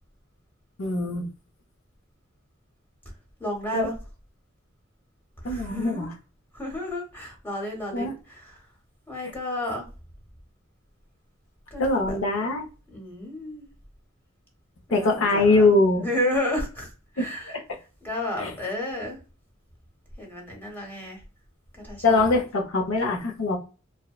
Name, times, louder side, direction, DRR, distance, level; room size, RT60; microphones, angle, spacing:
voice 1, 0.8-1.3 3.7-3.9 5.4-6.1 7.9-8.2 11.8-12.6 14.9-16.1 17.2-17.3 18.4-18.5 22.0-23.6, left 3 dB, 80° left, 0.6 m, -22 dB
voice 2, 3.4-3.9 5.4-6.0 6.5-8.6 9.1-9.8 11.7-12.2 12.9-13.7 14.9-15.7 16.0-16.9 17.1-17.6 18.0-19.2 20.2-21.2 21.7-22.4, left 1 dB, 10° left, 0.8 m, -31 dB
2.7 x 2.0 x 2.3 m
head